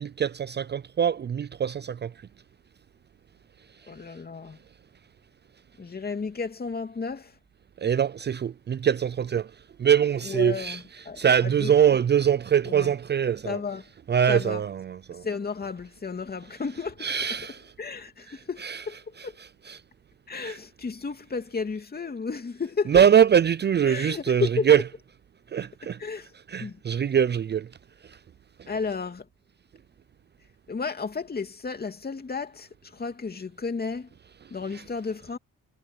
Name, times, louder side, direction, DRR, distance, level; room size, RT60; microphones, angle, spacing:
voice 1, 0.0-2.1 7.8-9.5 9.8-10.8 11.2-13.6 14.1-15.2 17.0-17.6 18.6-18.8 19.7-19.8 20.4-20.6 22.9-24.8 25.5-26.0 26.5-27.6, right 8 dB, 35° right, 0.5 m, -23 dB
voice 2, 3.9-4.6 5.8-7.3 10.2-11.7 12.6-12.9 13.4-13.8 14.3-14.6 15.2-17.1 17.8-19.0 19.2-19.3 20.3-23.0 23.9-24.7 26.0-26.3 26.6-26.8 28.7-29.3 30.7-34.1 34.5-35.4, left 5 dB, 30° left, 2.8 m, -33 dB
cardioid pair, 90°, 30 cm